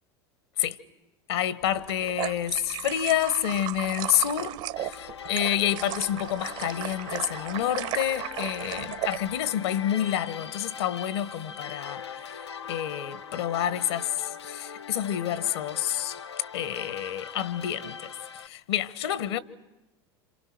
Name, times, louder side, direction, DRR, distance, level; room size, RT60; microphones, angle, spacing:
voice 1, 1.3-4.6 4.8-12.0 12.7-16.1 16.5-18.0 18.4-19.4, left 11 dB, 70° left, 1.3 m, -28 dB
sound 1, 1.7-9.2, right 14 dB, 60° right, 1.4 m, -35 dB
sound 2, 4.8-18.5, left 6 dB, 90° left, 0.8 m, -41 dB
29.5 x 27.5 x 6.0 m
hypercardioid pair, 80°, 14 cm